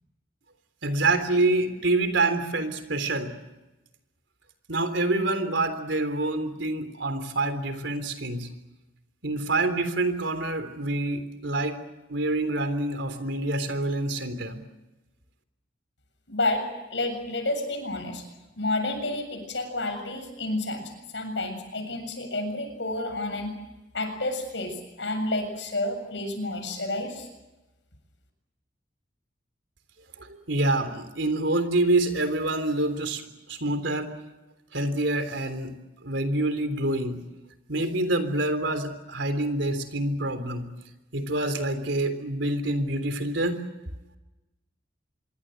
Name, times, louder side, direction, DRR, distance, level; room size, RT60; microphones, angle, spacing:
voice 1, 0.8-3.4 4.7-8.5 9.2-11.8 12.1-14.6 30.2-34.1 34.7-35.7 36.0-37.2 37.7-40.7 41.1-43.6, right 2 dB, 80° right, 9 dB, 3.5 m, -26 dB
voice 2, 16.3-18.2 18.6-23.6 23.9-27.3, left 2 dB, 70° left, 7 dB, 7.2 m, -30 dB
26.0 x 23.0 x 7.9 m, 1.1 s
head